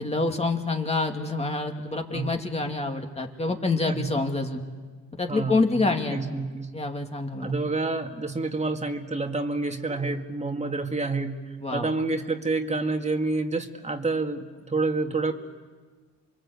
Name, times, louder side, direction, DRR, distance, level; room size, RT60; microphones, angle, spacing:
voice 1, 0.0-4.6 5.2-6.2 6.7-7.5 11.6-11.9, left 3 dB, 20° left, 3 dB, 2.6 m, -27 dB
voice 2, 5.3-6.8 7.4-11.4 11.7-15.3, right 3 dB, 20° right, 4 dB, 2.1 m, -28 dB
28.5 x 23.0 x 8.4 m, 1.5 s
cardioid pair, 90°, 30 cm